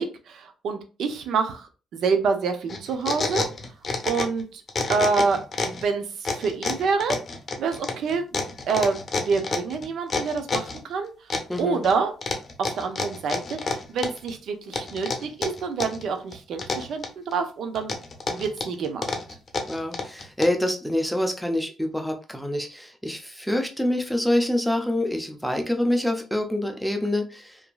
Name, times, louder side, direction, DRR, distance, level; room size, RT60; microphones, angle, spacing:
voice 1, 0.0-3.5 4.1-4.6 4.9-7.2 7.6-11.1 11.6-12.1 12.6-18.0 18.3-19.2, right 5 dB, 70° right, 7 dB, 0.5 m, -27 dB
sound 1, 2.7-4.4 4.7-5.8 6.2-10.8 11.3-11.9 12.2-14.3 14.7-16.0 16.3-17.3 17.8-20.7, left 4 dB, 40° left, 0.7 m, -28 dB
voice 2, 11.5-11.9 19.7-27.6, left 1 dB, ahead, 4 dB, 0.6 m, -26 dB
2.8 x 2.5 x 2.3 m, 0.34 s
cardioid pair, 90°, 0 cm